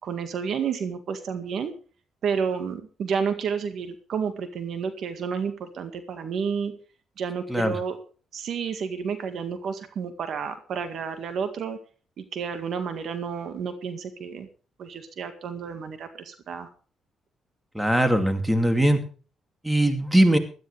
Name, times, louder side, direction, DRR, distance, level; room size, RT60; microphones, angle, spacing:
voice 1, 0.0-1.7 2.2-6.8 7.2-8.0 8.3-11.8 12.2-14.5 14.8-16.7, right 6 dB, 65° right, 8 dB, 1.9 m, -30 dB
voice 2, 17.7-19.0 19.6-20.4, right 1 dB, 5° right, 7 dB, 2.7 m, -20 dB
17.0 x 13.0 x 3.4 m, 0.38 s
cardioid pair, 90°, 0 cm